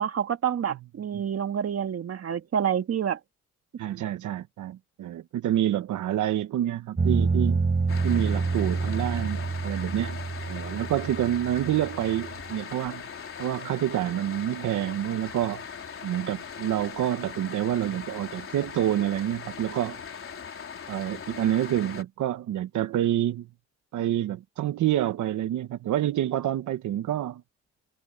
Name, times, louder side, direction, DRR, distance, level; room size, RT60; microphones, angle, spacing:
voice 1, 0.0-3.2, right 8 dB, 50° right, 2.5 m, -28 dB
voice 2, 3.8-7.7 8.0-10.2 10.5-13.0 13.4-15.6 16.0-20.0 20.9-23.5 23.9-27.4, right 12 dB, 75° right, 1.4 m, -28 dB
sound 1, 7.0-12.5, right 4 dB, 30° right, 3.4 m, -28 dB
sound 2, 7.9-22.0, left 6 dB, 45° left, 3.8 m, -40 dB
cardioid pair, 90°, 30 cm